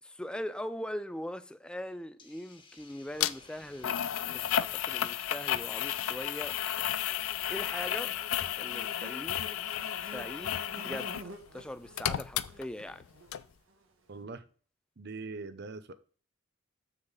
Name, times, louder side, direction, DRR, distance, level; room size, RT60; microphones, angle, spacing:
voice 1, 0.0-6.6 7.5-8.1 8.6-9.5 10.0-11.2 11.5-13.1, left 1 dB, 5° left, 0.4 m, -41 dB
Hiss, 2.2-6.5, left 3 dB, 25° left, 1.4 m, -58 dB
sound 1, 3.2-3.3 3.8-11.3 11.6-13.0 13.3-13.4, left 11 dB, 90° left, 0.4 m, -33 dB
Buzz, 3.4-13.8, equal, 70° right, 1.6 m, -50 dB
voice 2, 14.1-14.4 15.0-15.9, right 3 dB, 50° right, 0.7 m, -42 dB
7.4 x 6.6 x 3.9 m
head